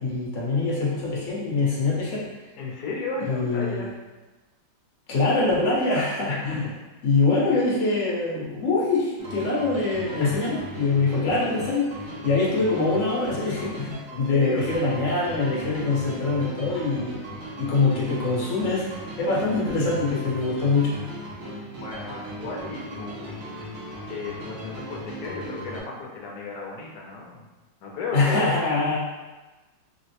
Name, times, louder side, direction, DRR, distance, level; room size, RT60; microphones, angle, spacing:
voice 1, 0.0-2.3 3.3-3.8 5.1-6.6 7.0-17.2 17.6-18.9 19.2-20.9 28.1-29.0, left 3 dB, 50° left, -6 dB, 0.9 m, -24 dB
voice 2, 2.6-3.9 6.3-6.7 10.2-10.4 11.1-11.2 14.1-14.7 21.4-23.5 24.1-27.5 27.8-28.6, left 4 dB, 70° left, -1 dB, 1.0 m, -34 dB
sound 1, 9.2-25.8, right 1 dB, 70° right, 0.6 m, -38 dB
3.7 x 2.0 x 2.8 m, 1.2 s
omnidirectional pair, 2.1 m